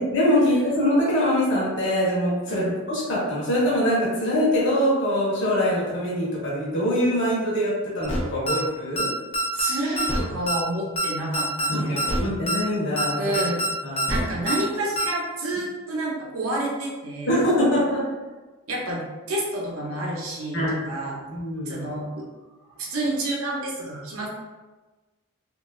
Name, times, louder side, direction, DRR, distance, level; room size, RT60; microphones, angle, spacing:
voice 1, 0.0-9.1 11.7-13.3 13.8-14.1 17.3-18.0 20.5-20.8 21.3-21.8, equal, 55° left, -6 dB, 0.8 m, -23 dB
sound 1, 8.0-8.2 8.5-8.6 9.0-9.1 9.3-9.7 10.0-10.2 10.5-10.6 11.0-11.1 11.3-11.7 12.0-12.2 12.5-12.6 13.0-13.1 13.3-13.7 14.0-14.2 14.5-14.6 15.0-15.1, right 1 dB, 30° left, 0.4 m, -25 dB
voice 2, 9.5-12.1 13.2-13.6 14.1-17.4 18.7-21.2 21.7-22.3 22.8-24.3, right 1 dB, 80° right, -2 dB, 0.6 m, -29 dB
3.0 x 2.3 x 2.3 m, 1.2 s
head